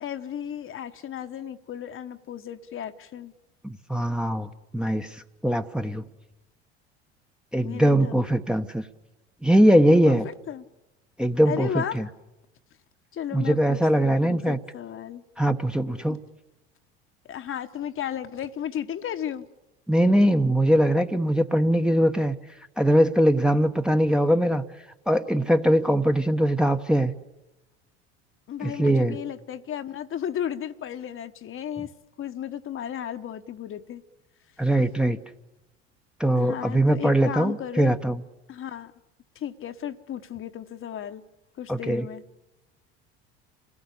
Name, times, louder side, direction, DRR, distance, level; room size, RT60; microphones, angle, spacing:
voice 1, 0.0-3.3 7.6-8.2 10.0-10.6 11.4-12.0 13.1-15.2 16.1-16.2 17.3-19.5 28.5-31.9 32.2-34.0 36.4-38.0 38.5-38.9 39.3-41.2 41.6-42.2, left 9 dB, 40° left, 8 dB, 1.2 m, -34 dB
voice 2, 3.6-6.0 7.5-8.8 9.4-10.2 11.2-12.1 13.3-14.6 15.4-16.2 19.9-22.4 22.8-24.6 25.1-27.1 28.6-29.2 34.6-35.2 36.2-38.2 41.7-42.0, right 1 dB, 5° right, 5 dB, 1.0 m, -21 dB
27.5 x 17.5 x 8.4 m, 1.0 s
hypercardioid pair, 75°, 32 cm